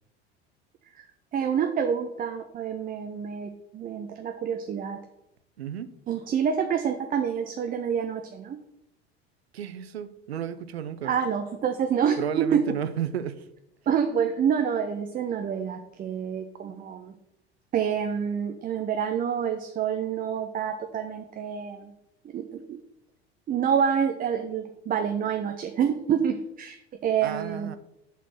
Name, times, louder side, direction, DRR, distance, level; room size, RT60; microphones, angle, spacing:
voice 1, 1.3-5.0 6.1-8.6 11.0-12.6 13.9-17.1 17.7-21.9 22.3-22.8 23.5-26.8 27.0-27.7, right 8 dB, 25° right, 5 dB, 0.6 m, -27 dB
voice 2, 5.6-5.9 9.5-11.1 12.2-13.5 27.2-27.8, right 9 dB, 75° right, 12 dB, 0.6 m, -33 dB
7.3 x 4.2 x 5.7 m, 0.83 s
figure-of-eight pair, 70°, 32 cm